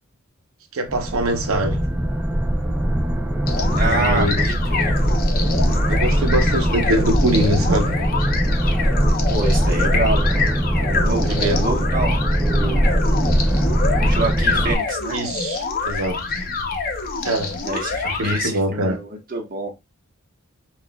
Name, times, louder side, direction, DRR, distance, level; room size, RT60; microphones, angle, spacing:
voice 1, 0.7-1.9 3.8-4.4 5.9-8.0 11.1-11.6 15.1-16.2 17.2-17.6 18.0-19.0, right 1 dB, 75° right, 0.8 m, -23 dB
sound 1, 0.9-14.8, equal, 5° right, 0.5 m, -20 dB
sound 2, 3.5-18.5, left 4 dB, 45° left, 0.7 m, -26 dB
voice 2, 3.7-5.0 9.3-10.4 10.8-12.9 14.0-15.2 17.6-19.7, right 2 dB, 40° right, 1.2 m, -27 dB
6.0 x 2.4 x 2.2 m
head